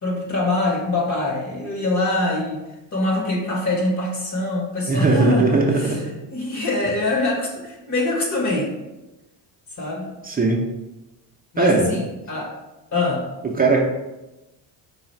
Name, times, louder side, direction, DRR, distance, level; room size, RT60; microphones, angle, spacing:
voice 1, 0.0-2.6 2.9-6.0 6.3-8.7 9.8-10.1 11.5-12.6 12.9-13.3, left 2 dB, 40° left, 0 dB, 1.3 m, -24 dB
voice 2, 4.9-6.0 10.2-10.6 11.6-11.8 13.6-13.8, right 3 dB, 20° right, -1 dB, 0.7 m, -18 dB
4.8 x 2.4 x 4.5 m, 1.0 s
cardioid pair, 95°, 44 cm